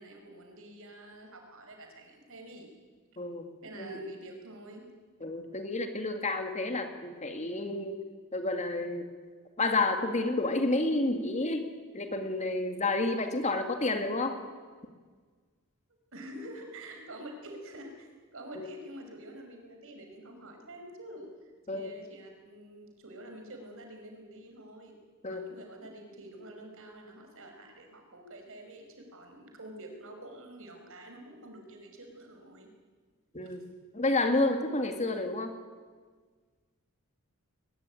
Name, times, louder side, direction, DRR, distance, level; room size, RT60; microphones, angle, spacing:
voice 1, 0.0-2.7 3.6-4.8 16.1-25.0 25.3-32.7 33.4-33.6, right 1 dB, 65° right, 3 dB, 5.4 m, -47 dB
voice 2, 3.2-3.5 3.8-4.0 5.2-8.0 8.3-9.1 9.6-11.7 11.9-14.4 18.6-18.7 21.7-21.9 25.2-25.4 33.3-33.6 33.9-35.5, left 2 dB, 30° left, 6 dB, 2.2 m, -30 dB
22.0 x 20.5 x 9.2 m, 1.5 s
head